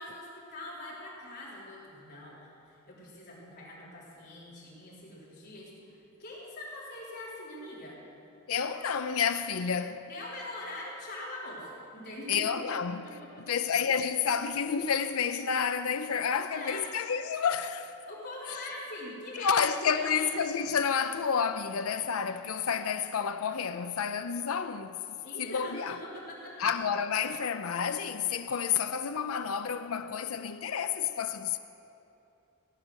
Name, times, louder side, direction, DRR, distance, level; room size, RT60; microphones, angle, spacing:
voice 1, 0.0-8.0 10.1-13.5 16.4-16.8 18.1-19.6 19.9-20.3 25.2-26.7, left 1 dB, 50° left, 3.9 m, -43 dB
voice 2, 8.5-10.1 12.3-13.0 13.4-17.9 19.3-25.0 25.4-26.0 26.6-31.6, left 7 dB, 85° left, 0.6 m, -30 dB
17.5 x 8.7 x 6.4 m
head